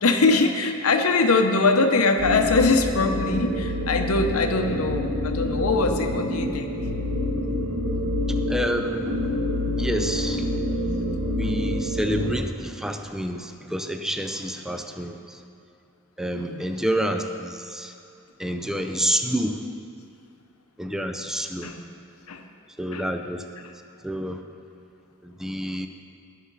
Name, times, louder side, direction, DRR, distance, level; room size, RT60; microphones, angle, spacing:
voice 1, 0.0-6.8 16.3-16.7 21.6-21.9 22.3-22.4 22.9-23.1, left 3 dB, 75° left, 5 dB, 0.8 m, -22 dB
sound 1, 2.2-12.3, left 1 dB, 85° right, 1.7 m, -27 dB
voice 2, 8.5-9.2 9.8-10.5 11.3-15.4 16.2-17.9 18.4-19.6 20.8-21.7 22.8-23.4 24.0-24.4 25.2-25.9, equal, ahead, 6 dB, 0.5 m, -28 dB
19.5 x 6.5 x 4.0 m, 2.6 s
head